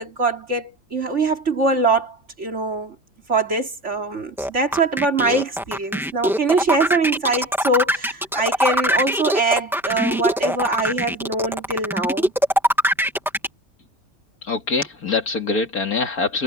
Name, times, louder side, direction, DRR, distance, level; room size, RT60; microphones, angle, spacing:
voice 1, 0.0-2.9 3.3-12.3, right 3 dB, 50° right, 3.2 m, -23 dB
sound 1, 4.4-13.5, equal, ahead, 1.7 m, -21 dB
voice 2, 14.4-16.4, left 4 dB, 70° left, 3.2 m, -23 dB
omnidirectional pair, 1.6 m